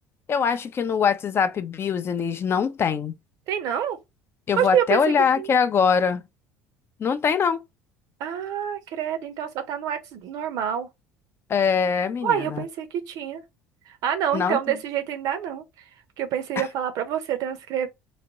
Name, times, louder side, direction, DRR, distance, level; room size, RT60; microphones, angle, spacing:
voice 1, 0.3-3.1 4.5-6.2 7.0-7.6 11.5-12.6 14.3-14.6 16.6-16.7, left 6 dB, 30° left, 0.5 m, -23 dB
voice 2, 3.5-4.0 4.6-5.0 5.4-5.5 8.2-10.9 12.2-13.4 13.9-15.6 16.2-17.9, right 9 dB, 55° right, 0.7 m, -27 dB
4.0 x 2.2 x 2.9 m
figure-of-eight pair, 65°, 8 cm